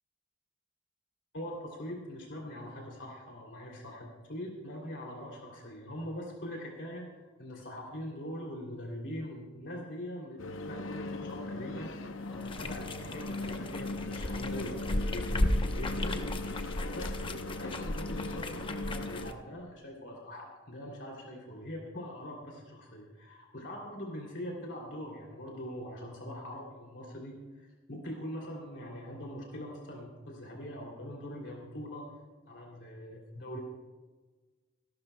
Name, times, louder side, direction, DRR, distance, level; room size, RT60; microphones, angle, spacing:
voice 1, 1.3-11.9 12.3-16.2 16.8-32.0 32.5-33.6, equal, 65° left, -1 dB, 2.8 m, -42 dB
sound 1, 10.4-19.3, left 2 dB, 90° left, 0.8 m, -39 dB
sound 2, 12.4-19.3, left 1 dB, 25° left, 0.8 m, -35 dB
26.5 x 12.0 x 2.2 m, 1.3 s
head